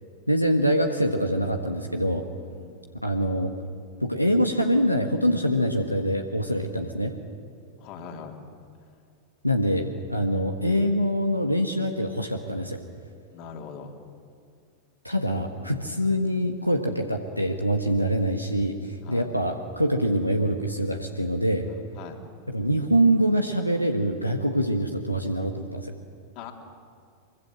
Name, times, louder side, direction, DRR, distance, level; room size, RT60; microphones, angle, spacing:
voice 1, 0.3-2.3 3.0-3.5 4.0-7.1 9.4-12.8 15.0-21.7 22.5-25.9, equal, 90° left, 4 dB, 1.4 m, -24 dB
voice 2, 7.8-8.4 13.3-13.9 19.0-19.3 21.7-22.2 26.3-26.5, left 7 dB, 45° left, 3 dB, 3.2 m, -41 dB
24.0 x 23.5 x 7.7 m, 2.2 s
figure-of-eight pair, 90°, 0 cm